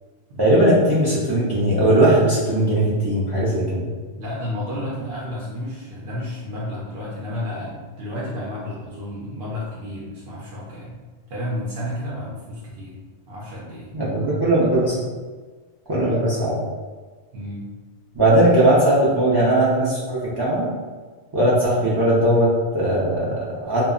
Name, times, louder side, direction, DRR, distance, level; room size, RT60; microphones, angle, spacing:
voice 1, 0.4-3.9 13.9-15.1 15.9-16.6 18.1-20.7 21.3-23.9, right 1 dB, 35° right, -8 dB, 0.4 m, -19 dB
voice 2, 4.2-11.0 11.3-13.9 17.3-17.7, left 1 dB, 60° right, -5 dB, 0.7 m, -31 dB
2.1 x 2.0 x 3.6 m, 1.4 s
omnidirectional pair, 1.2 m